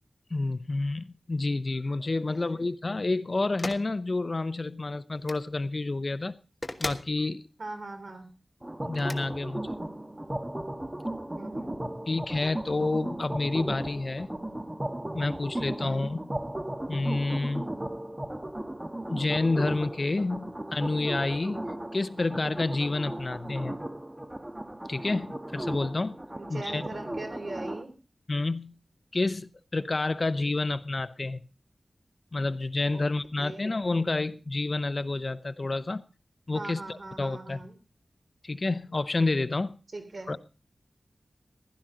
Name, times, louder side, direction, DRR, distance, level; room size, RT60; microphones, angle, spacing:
voice 1, 0.3-6.4 6.8-7.5 8.8-9.7 12.1-14.3 15.1-16.3 16.9-17.6 19.1-21.7 21.9-23.8 24.9-26.2 26.5-26.8 28.3-28.8 29.1-31.4 32.3-36.0 36.5-37.6 38.4-39.8 40.3-40.4, left 2 dB, 45° left, 0.6 m, -29 dB
voice 2, 2.3-2.7 7.6-8.3 11.3-11.8 15.8-16.1 26.3-27.9 32.9-33.0 33.4-33.7 36.5-37.7 39.9-40.3, right 2 dB, 60° right, 3.0 m, -40 dB
sound 1, 3.6-3.9 5.2-5.4 6.6-7.1 8.9-9.2, left 2 dB, 30° left, 1.2 m, -36 dB
sound 2, 8.6-27.8, right 1 dB, 20° right, 1.3 m, -36 dB
15.5 x 12.0 x 3.8 m
wide cardioid pair, 80°, 0 cm